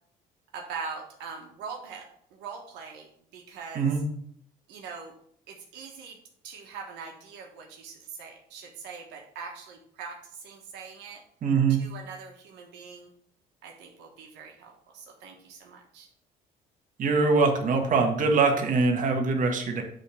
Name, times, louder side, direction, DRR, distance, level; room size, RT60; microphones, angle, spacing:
voice 1, 0.5-3.9 4.7-5.1 5.5-6.2 6.4-11.2 11.8-13.1 13.6-16.1, right 5 dB, 90° right, 1 dB, 1.3 m, -42 dB
voice 2, 11.4-11.9 17.0-19.8, right 4 dB, 50° right, 3 dB, 1.5 m, -23 dB
8.1 x 3.5 x 6.3 m, 0.67 s
cardioid pair, 110°, 17 cm